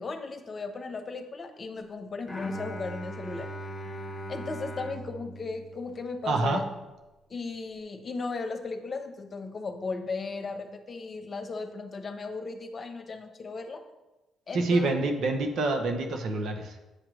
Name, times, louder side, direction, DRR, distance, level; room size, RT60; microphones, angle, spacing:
voice 1, 0.0-3.5 4.3-6.7 7.3-13.8 14.5-14.9, left 4 dB, 45° left, 7 dB, 0.9 m, -36 dB
Bowed string instrument, 2.3-6.4, right 1 dB, 15° left, 1.4 m, -39 dB
voice 2, 6.2-6.6 14.5-16.8, right 3 dB, 70° right, 4 dB, 0.9 m, -27 dB
8.0 x 3.0 x 6.2 m, 1.1 s
supercardioid pair, 55°, 0 cm